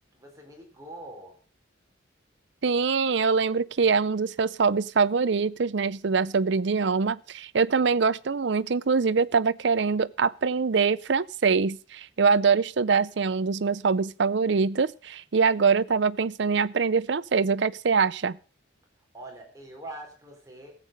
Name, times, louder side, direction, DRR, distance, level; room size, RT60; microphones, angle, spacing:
voice 1, 0.1-1.3 19.1-20.7, right 1 dB, 15° right, 3.9 m, -43 dB
voice 2, 2.6-18.4, right 5 dB, 65° right, 0.5 m, -24 dB
15.0 x 8.2 x 6.5 m
head